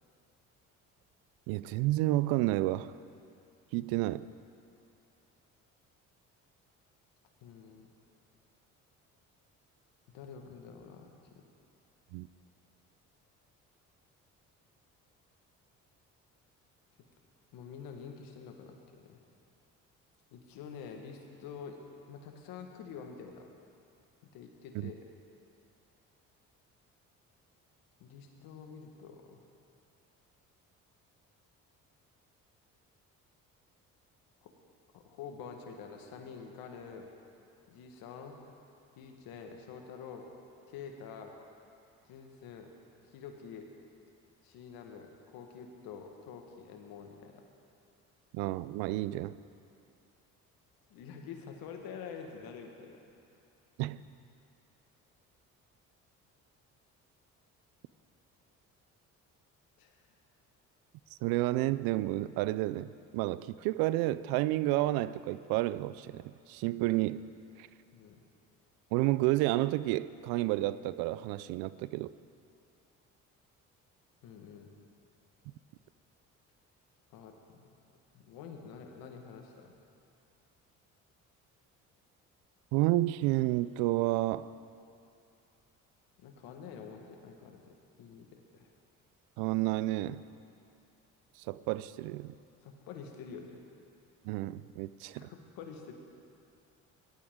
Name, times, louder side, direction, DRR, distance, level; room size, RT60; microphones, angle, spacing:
voice 1, 1.5-3.0 3.7-4.3 12.1-12.3 24.7-24.9 48.3-49.4 53.8-54.0 61.2-67.3 67.6-67.7 68.9-72.1 82.7-84.5 89.4-90.2 91.4-92.3 94.2-95.3, right 17 dB, 80° right, 0.5 m, -30 dB
voice 2, 7.4-7.9 10.1-11.5 17.5-19.2 20.3-21.8 22.1-23.4 24.3-24.9 28.0-29.4 34.4-34.5 34.9-37.1 37.7-38.4 39.0-40.3 40.7-41.3 42.1-42.7 43.1-43.7 44.4-47.4 50.9-53.0 59.8-60.0 67.9-68.2 74.2-74.7 77.1-77.7 78.1-79.8 86.2-88.7 92.6-93.6 95.1-95.9, left 6 dB, 80° left, 1.6 m, -47 dB
17.5 x 12.0 x 3.7 m
supercardioid pair, 65°, 36 cm